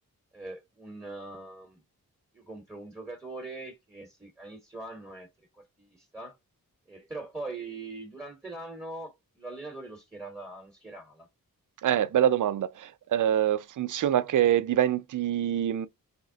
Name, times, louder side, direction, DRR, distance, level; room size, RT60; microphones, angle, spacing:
voice 1, 0.3-1.8 2.3-5.3 5.5-6.4 6.9-11.3, right 2 dB, 10° right, 1.1 m, -42 dB
voice 2, 11.8-15.9, right 10 dB, 60° right, 0.4 m, -25 dB
3.6 x 2.0 x 3.7 m
cardioid pair, 55°, 35 cm